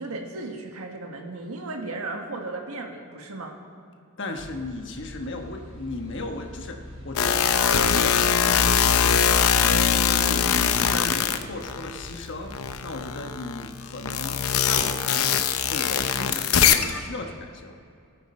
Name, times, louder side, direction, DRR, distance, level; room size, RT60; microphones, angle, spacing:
voice 1, 0.0-3.6, right 2 dB, 90° right, 3 dB, 1.5 m, -35 dB
voice 2, 4.2-12.5 12.8-15.4 15.7-17.8, left 2 dB, 55° left, 4 dB, 1.1 m, -36 dB
sound 1, 4.4-12.7, equal, 30° right, 3.7 m, -44 dB
sound 2, 7.2-12.1 12.5-17.0, left 7 dB, 80° left, 0.6 m, -22 dB
18.5 x 9.2 x 4.3 m, 2.4 s
head